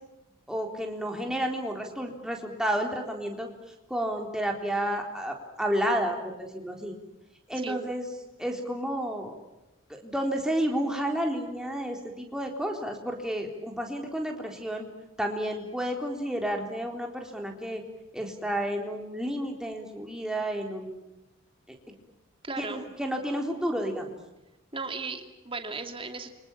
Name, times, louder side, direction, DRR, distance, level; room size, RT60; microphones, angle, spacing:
voice 1, 0.5-3.5 3.9-7.0 7.5-8.1 8.4-9.3 9.9-14.9 15.2-17.8 18.1-21.1 22.6-24.1, equal, 5° right, 2 dB, 3.8 m, -31 dB
voice 2, 22.4-22.8 24.7-26.3, right 3 dB, 25° right, 6 dB, 2.6 m, -36 dB
30.0 x 25.5 x 7.3 m, 0.96 s
head